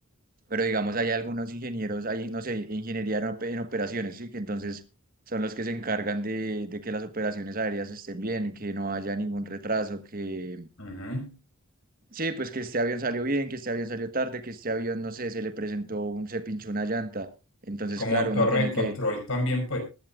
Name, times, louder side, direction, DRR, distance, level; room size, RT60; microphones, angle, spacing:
voice 1, 0.5-4.8 5.3-10.7 12.1-17.3 17.6-18.9, right 2 dB, 40° right, 1.4 m, -30 dB
voice 2, 10.8-11.3 18.0-19.8, left 2 dB, 65° left, 5.8 m, -27 dB
20.5 x 12.0 x 2.4 m
head